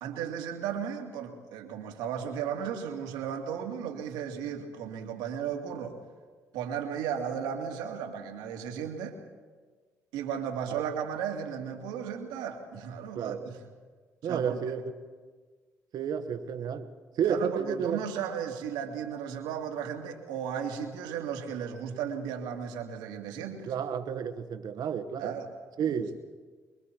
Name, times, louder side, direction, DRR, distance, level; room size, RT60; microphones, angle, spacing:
voice 1, 0.0-6.0 6.5-9.2 10.1-13.6 14.2-14.8 17.2-23.7 25.2-25.5 25.8-26.1, right 8 dB, 80° right, 4 dB, 2.4 m, -35 dB
voice 2, 13.1-13.5 14.2-14.8 15.9-16.9 17.2-18.0 23.6-25.3 25.8-26.2, right 7 dB, 65° right, 10 dB, 1.5 m, -31 dB
25.0 x 22.5 x 4.6 m, 1.5 s
hypercardioid pair, 50°, 7 cm